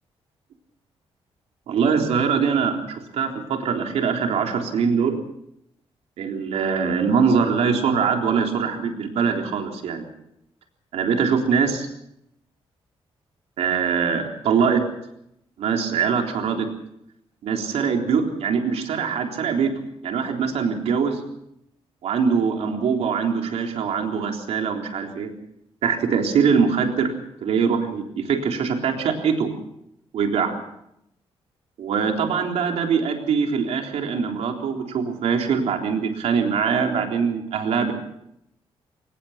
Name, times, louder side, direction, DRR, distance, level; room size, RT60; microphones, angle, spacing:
voice 1, 1.7-5.2 6.2-10.0 10.9-11.9 13.6-14.8 15.6-16.7 17.4-21.2 22.0-25.3 25.8-27.1 27.4-29.5 30.1-30.6 31.8-37.9, right 6 dB, 90° right, 2 dB, 3.8 m, -23 dB
23.5 x 20.0 x 5.9 m, 0.79 s
wide cardioid pair, 170°, 10 cm